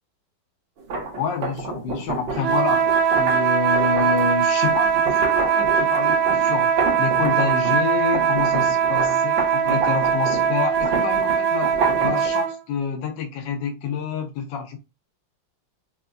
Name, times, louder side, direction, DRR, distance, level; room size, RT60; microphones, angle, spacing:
sound 1, 0.8-7.8 8.1-12.3, right 4 dB, 70° right, 1.8 m, -29 dB
voice 1, 1.2-11.7 12.0-14.8, left 6 dB, 75° left, 1.4 m, -28 dB
sound 2, 2.4-12.6, right 7 dB, 90° right, 1.5 m, -21 dB
5.7 x 2.2 x 2.5 m
omnidirectional pair, 2.1 m